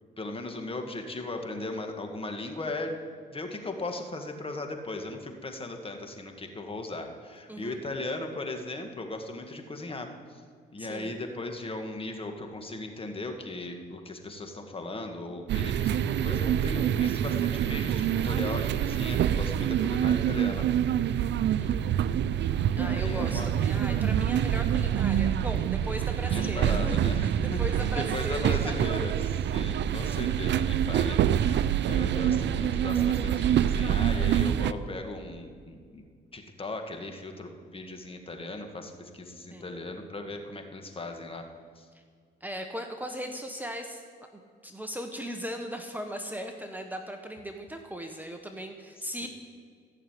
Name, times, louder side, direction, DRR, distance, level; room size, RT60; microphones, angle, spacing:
voice 1, 0.2-3.0 3.3-10.4 10.7-20.7 20.9-21.2 22.7-23.5 26.3-27.6 27.9-36.0 36.3-41.4 41.7-41.9 49.2-49.3, left 2 dB, 30° left, 5 dB, 1.7 m, -37 dB
voice 2, 10.8-11.1 21.4-21.8 22.8-29.0 31.6-31.8 39.5-39.7 41.9-42.0 42.4-44.0 44.6-49.3, equal, 10° right, 4 dB, 1.2 m, -38 dB
sound 1, 15.5-34.7, right 10 dB, 65° right, 0.5 m, -26 dB
15.0 x 6.7 x 9.3 m, 2.1 s
cardioid pair, 90°, 20 cm